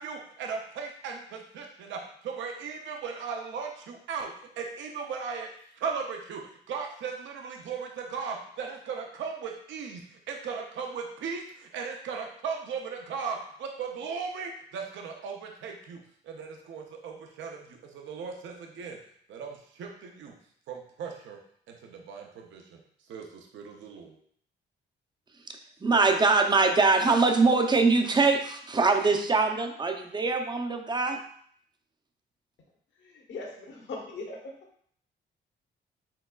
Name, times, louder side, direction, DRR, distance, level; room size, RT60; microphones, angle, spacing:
voice 1, 0.0-4.3 4.6-5.5 5.8-6.4 6.7-19.0 19.3-20.3 20.7-21.4 21.7-22.8 23.1-24.2, right 5 dB, 70° right, 2 dB, 0.6 m, -37 dB
voice 2, 25.8-31.2, right 3 dB, 20° right, 5 dB, 0.5 m, -23 dB
voice 3, 33.0-34.4, left 3 dB, 70° left, -1 dB, 1.1 m, -39 dB
4.5 x 3.8 x 2.3 m, 0.63 s
cardioid pair, 90°, 20 cm